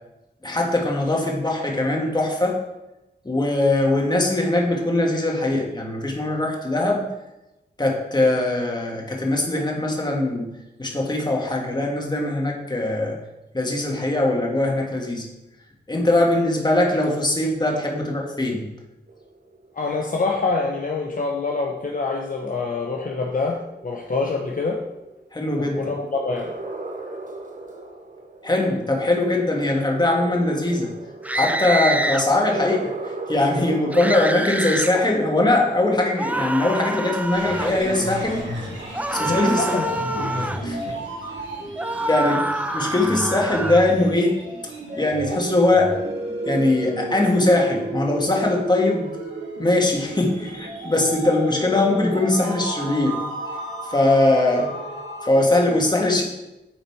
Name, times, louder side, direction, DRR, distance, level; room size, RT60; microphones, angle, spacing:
voice 1, 0.4-2.6 3.2-7.0 7.8-10.5 10.8-13.2 13.5-15.2 15.9-18.7 25.3-25.9 28.4-30.9 31.3-32.9 33.3-38.4 39.1-39.6 40.4-40.8 42.1-42.5 42.7-44.4 45.0-45.9 46.5-49.1 49.6-53.2 53.9-54.7 55.2-56.2, left 2 dB, 25° left, -1 dB, 1.6 m, -21 dB
sound 1, 19.1-36.4, right 2 dB, 45° right, 1.0 m, -38 dB
voice 2, 19.7-24.8 25.6-26.5 39.3-41.0, left 3 dB, 45° left, 0 dB, 0.8 m, -26 dB
sound 2, 31.2-32.2 33.9-34.9 36.2-37.8 38.9-40.6 41.8-43.9, right 1 dB, 10° right, 0.4 m, -26 dB
sound 3, 37.2-55.3, right 1 dB, 80° right, 2.6 m, -32 dB
8.9 x 4.1 x 4.5 m, 0.98 s
wide cardioid pair, 85°, 19 cm